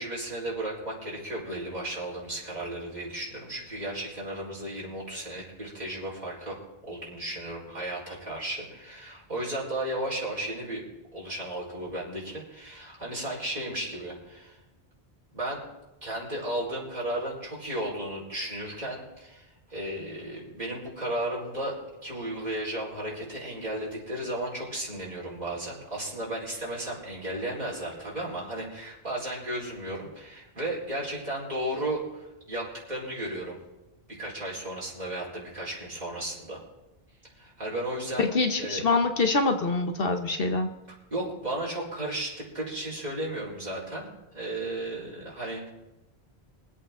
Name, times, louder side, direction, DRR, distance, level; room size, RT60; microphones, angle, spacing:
voice 1, 0.0-6.6 6.8-10.8 11.1-14.6 15.3-15.6 16.0-21.8 22.0-33.6 34.1-36.6 37.4-38.2 38.6-38.8 41.1-45.7, right 1 dB, 40° right, -6 dB, 4.5 m, -34 dB
voice 2, 38.2-40.7, left 3 dB, 65° left, 6 dB, 1.2 m, -25 dB
24.0 x 8.4 x 3.7 m, 1.0 s
omnidirectional pair, 1.1 m